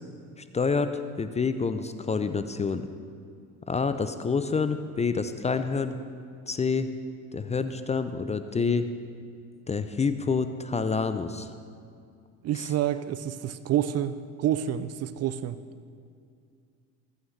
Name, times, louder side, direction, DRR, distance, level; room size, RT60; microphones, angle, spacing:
voice 1, 0.5-2.9 3.7-6.0 6.5-6.9 7.3-8.8 9.7-11.5, left 5 dB, 15° left, 10 dB, 0.5 m, -27 dB
voice 2, 12.4-15.6, right 11 dB, 35° right, 13 dB, 0.5 m, -28 dB
14.5 x 14.5 x 3.3 m, 2.3 s
hypercardioid pair, 70°, 43 cm